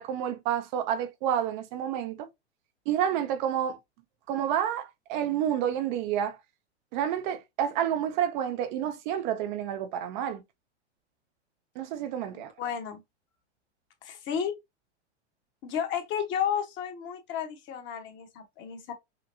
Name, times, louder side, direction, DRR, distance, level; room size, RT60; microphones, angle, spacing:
voice 1, 0.0-2.3 2.9-3.8 4.3-6.4 6.9-10.4 11.8-12.5, right 10 dB, 45° right, 0.6 m, -29 dB
voice 2, 12.3-13.0 14.0-14.5 15.6-18.9, left 8 dB, 35° left, 1.1 m, -32 dB
5.8 x 2.2 x 2.7 m
hypercardioid pair, 110°, 35 cm